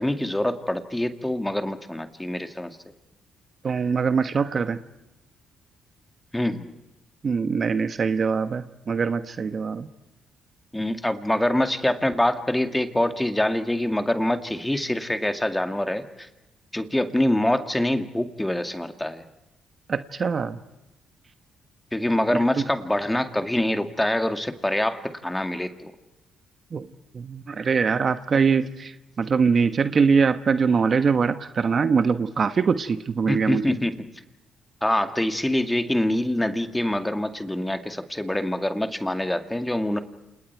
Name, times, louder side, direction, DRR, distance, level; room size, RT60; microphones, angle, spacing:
voice 1, 0.0-2.8 6.3-6.7 10.7-16.3 16.7-19.2 21.9-25.9 33.3-33.9 34.8-40.0, left 1 dB, 10° left, 7 dB, 2.1 m, -25 dB
voice 2, 3.6-4.8 7.2-9.9 19.9-20.6 22.3-22.6 26.7-26.9 27.1-33.6, right 5 dB, 45° right, 10 dB, 1.2 m, -23 dB
28.5 x 28.5 x 4.7 m, 0.94 s
cardioid pair, 90°, 0 cm